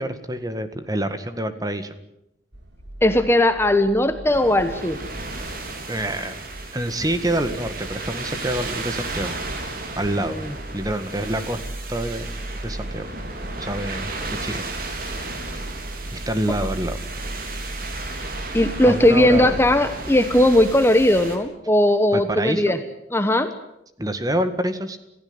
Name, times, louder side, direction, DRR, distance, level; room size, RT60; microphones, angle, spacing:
voice 1, 0.0-1.9 5.9-6.4 6.7-9.4 10.0-10.4 10.7-11.6 11.9-12.4 12.6-13.1 13.6-14.1 14.4-15.0 16.1-17.0 18.8-19.6 22.1-22.7 24.0-25.0, right 1 dB, 20° right, 10 dB, 1.7 m, -27 dB
sound 1, 2.5-21.1, right 1 dB, 75° right, 3.2 m, -38 dB
voice 2, 3.0-5.0 10.2-10.3 18.5-22.8 23.1-23.5, left 1 dB, 15° left, 9 dB, 1.1 m, -18 dB
sound 2, 4.3-21.4, right 2 dB, 50° right, 3.8 m, -34 dB
27.5 x 16.0 x 9.7 m, 0.82 s
head